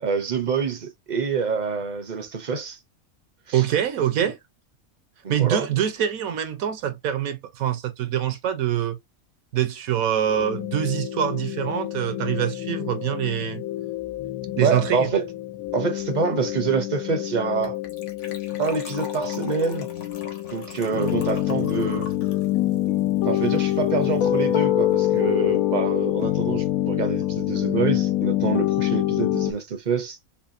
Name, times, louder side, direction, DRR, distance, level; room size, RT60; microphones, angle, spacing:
voice 1, 0.0-2.8 3.5-3.6 5.2-5.7 14.5-15.3 15.7-17.8 18.6-19.9 20.5-22.1 23.2-30.2, right 5 dB, 40° right, 0.7 m, -26 dB
voice 2, 3.5-4.4 5.3-9.0 9.5-13.6 14.6-15.1, right 10 dB, 75° right, 1.2 m, -24 dB
sound 1, 10.3-29.5, left 14 dB, 75° left, 1.1 m, -26 dB
Gurgling / Trickle dribble / Fill (with liquid), 17.6-23.9 24.1-24.2 24.4-24.6 24.9-25.0, left 3 dB, 55° left, 1.4 m, -43 dB
5.5 x 2.2 x 2.7 m
omnidirectional pair, 1.5 m